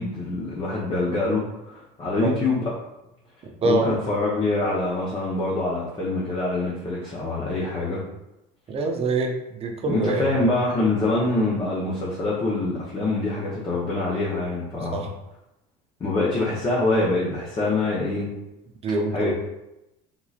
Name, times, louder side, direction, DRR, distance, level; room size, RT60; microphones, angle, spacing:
voice 1, 0.0-2.7 3.6-8.0 9.9-15.1 16.0-18.3 19.1-19.3, left 2 dB, 30° left, -6 dB, 0.9 m, -25 dB
voice 2, 3.4-3.9 8.7-10.4 14.9-15.1 18.8-19.3, right 2 dB, 35° right, 3 dB, 0.6 m, -25 dB
3.7 x 2.9 x 2.4 m, 0.91 s
supercardioid pair, 105°, 18 cm